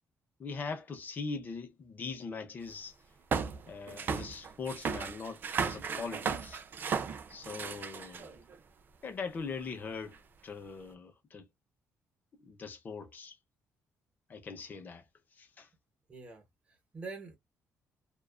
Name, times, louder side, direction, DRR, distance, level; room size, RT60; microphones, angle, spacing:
voice 1, 0.4-2.9 3.7-6.6 7.3-8.4 9.0-10.2 10.4-11.5 12.4-13.3 14.3-15.0 15.4-15.7, left 4 dB, 30° left, 0.6 m, -41 dB
sound 1, 3.3-8.5 9.4-9.5 10.1-10.2, right 6 dB, 35° right, 0.3 m, -35 dB
voice 2, 16.1-17.4, right 4 dB, 20° right, 0.9 m, -45 dB
2.4 x 2.3 x 2.2 m
cardioid pair, 160°, 6 cm